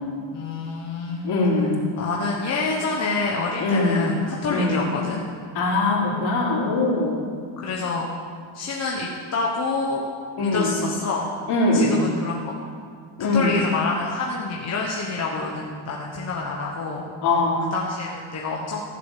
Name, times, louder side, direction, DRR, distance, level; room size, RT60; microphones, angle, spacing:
voice 1, 0.3-1.4 2.0-5.2 7.0-7.1 7.6-8.1 8.5-10.0 10.4-11.3 11.7-12.5 13.3-17.0 17.7-18.8, left 3 dB, 35° left, -2 dB, 1.2 m, -27 dB
voice 2, 1.2-1.9 3.6-4.2 4.5-4.9 5.5-7.2 10.4-10.8 11.5-12.1 13.2-13.6 17.2-17.7, left 2 dB, 55° left, -4 dB, 3.8 m, -22 dB
14.5 x 7.6 x 7.4 m, 2.2 s
cardioid pair, 165°, 48 cm